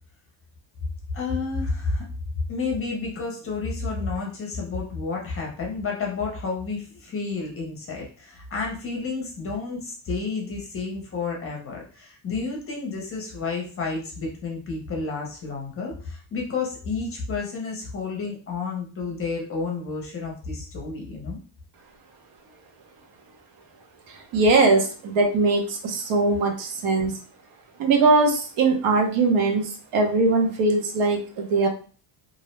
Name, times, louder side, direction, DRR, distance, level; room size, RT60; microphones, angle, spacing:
voice 1, 1.1-2.1 2.5-21.4, left 4 dB, 30° left, -1 dB, 0.5 m, -30 dB
voice 2, 24.3-27.2 27.8-31.7, right 3 dB, 85° right, 2 dB, 0.8 m, -21 dB
2.5 x 2.0 x 3.1 m, 0.39 s
cardioid pair, 175°, 49 cm